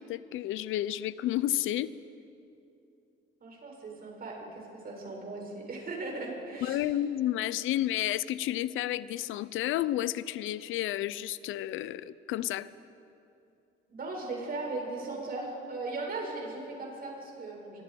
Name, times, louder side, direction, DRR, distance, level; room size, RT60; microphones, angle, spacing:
voice 1, 0.0-1.9 6.6-12.7, left 13 dB, 90° left, 17 dB, 0.7 m, -31 dB
voice 2, 3.4-6.9 13.9-17.8, right 2 dB, 50° right, -1 dB, 7.5 m, -38 dB
25.0 x 25.0 x 5.3 m, 2.8 s
cardioid pair, 90°, 20 cm